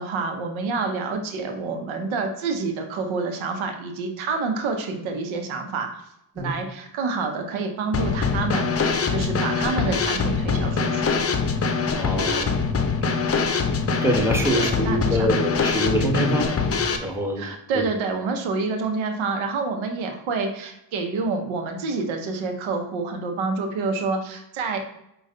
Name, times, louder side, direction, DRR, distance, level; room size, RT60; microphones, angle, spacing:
voice 1, 0.0-6.0 6.3-11.1 14.5-15.3 17.4-24.8, right 4 dB, 90° right, 4 dB, 0.8 m, -28 dB
Drum kit / Snare drum, 7.9-17.0, left 5 dB, 30° left, 0.6 m, -23 dB
voice 2, 11.9-12.6 14.0-16.5 17.0-17.4 17.7-17.8, right 1 dB, 5° right, 0 dB, 1.2 m, -24 dB
5.3 x 2.4 x 3.7 m, 0.80 s
cardioid pair, 65°, 46 cm